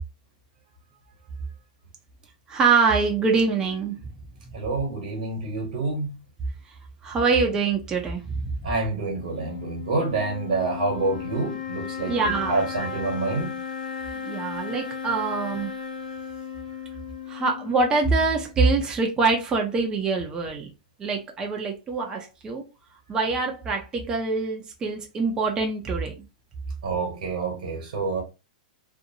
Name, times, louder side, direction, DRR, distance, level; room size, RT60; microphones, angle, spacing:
voice 1, 2.5-3.9 7.0-8.4 12.1-12.9 14.2-15.7 17.3-20.7 21.0-22.6 23.1-26.1, right 4 dB, 15° right, 0.5 m, -24 dB
voice 2, 4.5-6.2 8.6-13.5 26.8-28.2, right 3 dB, 75° right, 1.1 m, -27 dB
sound 1, 9.2-18.6, left 7 dB, 90° left, 0.6 m, -35 dB
2.6 x 2.0 x 2.7 m
supercardioid pair, 150°, 4 cm